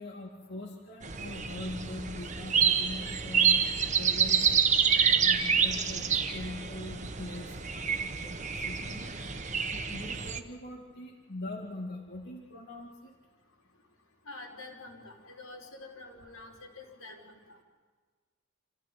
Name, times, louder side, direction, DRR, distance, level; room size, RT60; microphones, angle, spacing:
voice 1, 0.0-3.7 4.0-4.5 5.2-9.1 9.7-13.1, left 2 dB, 50° left, -1 dB, 2.3 m, -42 dB
sound 1, 1.0-10.4, right 7 dB, 35° right, 1.2 m, -28 dB
voice 2, 8.8-9.1 14.3-17.6, left 2 dB, 90° left, -1 dB, 5.3 m, -47 dB
27.5 x 15.0 x 9.4 m, 1.5 s
head